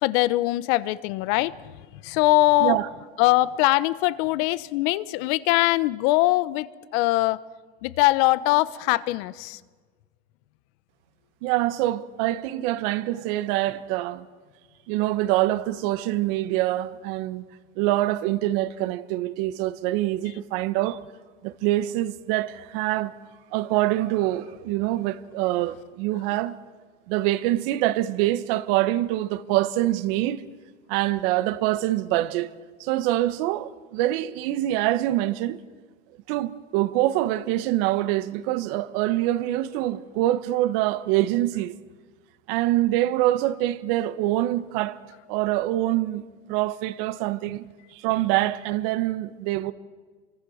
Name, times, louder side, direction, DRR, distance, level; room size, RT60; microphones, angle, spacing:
voice 1, 0.0-1.5 2.0-2.8 3.2-6.7 6.9-7.4 7.8-9.6, left 18 dB, 65° left, 1.1 m, -22 dB
voice 2, 11.4-14.3 14.9-17.4 17.7-21.0 21.4-23.1 23.5-26.5 27.1-30.4 30.9-32.5 32.8-35.6 36.3-41.7 42.5-45.0 45.3-46.2 46.5-47.6 47.9-49.7, right 15 dB, 65° right, 1.4 m, -25 dB
27.0 x 24.0 x 6.5 m
supercardioid pair, 115°, 30 cm